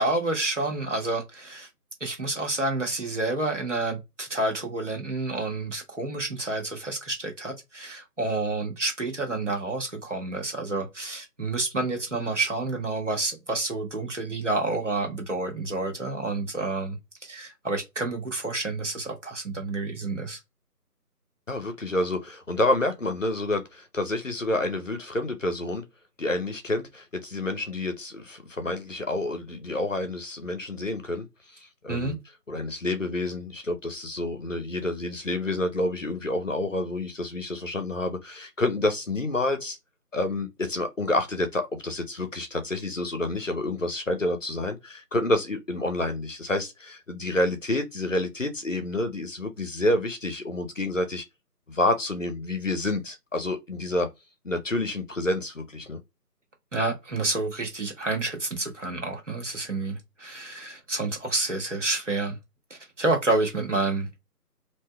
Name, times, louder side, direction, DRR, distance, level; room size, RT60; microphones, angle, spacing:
voice 1, 0.0-1.7 2.0-17.0 17.2-20.4 31.9-32.1 56.7-62.4 62.7-64.1, right 2 dB, 50° right, 1.3 m, -29 dB
voice 2, 21.5-25.8 26.2-32.2 32.5-39.8 40.1-51.2 51.7-54.1 54.4-56.0, left 2 dB, 55° left, 0.7 m, -28 dB
3.4 x 2.6 x 2.2 m
figure-of-eight pair, 175°, 47 cm